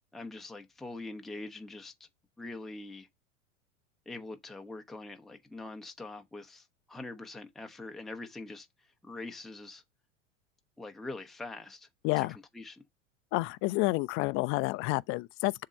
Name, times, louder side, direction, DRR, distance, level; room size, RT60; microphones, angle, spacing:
voice 1, 0.1-2.1 2.4-3.1 4.1-9.8 10.8-11.9 12.2-12.8, left 2 dB, ahead, 0.8 m, -44 dB
voice 2, 12.0-12.4 13.3-15.6, left 22 dB, 35° left, 0.4 m, -29 dB
7.1 x 2.8 x 5.2 m
hypercardioid pair, 90°, 38 cm